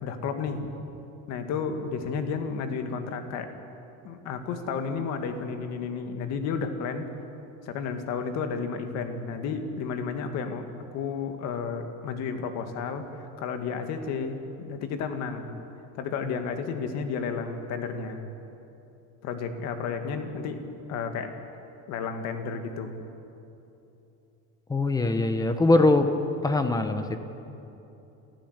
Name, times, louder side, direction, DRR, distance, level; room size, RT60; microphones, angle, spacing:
voice 1, 0.0-0.7 1.3-3.5 4.0-7.1 7.7-10.7 10.9-15.6 15.9-18.3 19.2-20.6 20.9-21.3 21.9-23.0, left 5 dB, 55° left, 6 dB, 2.2 m, -32 dB
voice 2, 24.7-26.1 26.4-27.2, left 2 dB, 10° left, 8 dB, 1.1 m, -22 dB
27.5 x 15.5 x 8.2 m, 2.9 s
cardioid pair, 160°, 32 cm